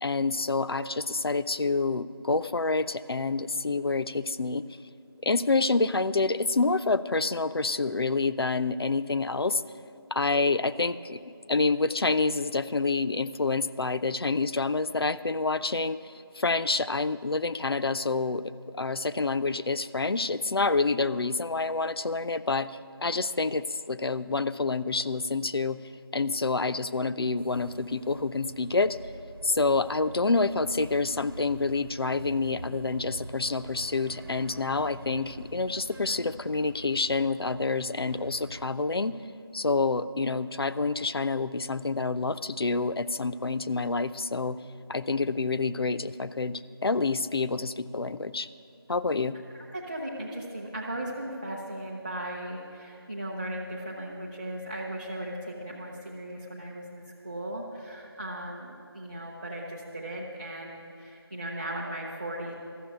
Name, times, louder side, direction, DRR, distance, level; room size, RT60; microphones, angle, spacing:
voice 1, 0.0-4.7 5.2-9.6 10.1-25.8 26.1-29.0 29.4-39.2 39.5-44.6 44.9-48.5 48.9-49.4, left 3 dB, 70° left, 12 dB, 0.5 m, -28 dB
sound 1, 27.4-38.7, right 2 dB, 65° right, 1.1 m, -46 dB
voice 2, 49.5-62.5, right 1 dB, 20° right, -6 dB, 0.7 m, -37 dB
13.0 x 6.9 x 9.0 m, 2.4 s
figure-of-eight pair, 170°, 13 cm